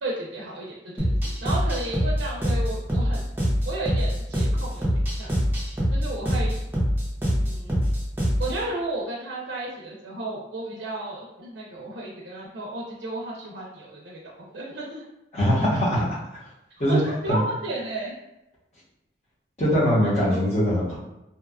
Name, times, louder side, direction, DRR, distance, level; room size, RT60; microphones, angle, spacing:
voice 1, 0.0-3.2 3.7-4.9 5.2-5.3 5.9-6.6 7.4-7.9 8.4-15.0 16.9-18.2 20.0-20.5, right 2 dB, 75° right, -3 dB, 0.5 m, -33 dB
sound 1, 1.0-8.6, equal, 10° right, 0.5 m, -24 dB
voice 2, 15.3-16.4 16.8-17.0 17.3-17.4 19.6-21.0, equal, 35° left, -7 dB, 0.9 m, -22 dB
2.8 x 2.2 x 2.3 m, 0.93 s
head